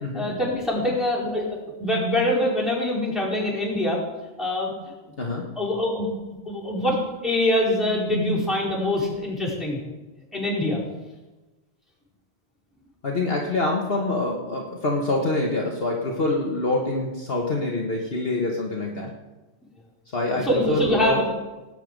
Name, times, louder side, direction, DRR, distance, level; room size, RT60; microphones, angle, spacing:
voice 1, 0.1-1.5 1.8-4.0 4.4-4.7 5.5-6.1 6.4-7.0 7.2-9.8 10.3-10.8 20.4-21.2, left 1 dB, ahead, -6 dB, 4.7 m, -24 dB
voice 2, 13.0-19.1 20.1-21.2, left 2 dB, 50° left, -1 dB, 1.6 m, -25 dB
18.5 x 9.2 x 5.2 m, 1.2 s
omnidirectional pair, 1.3 m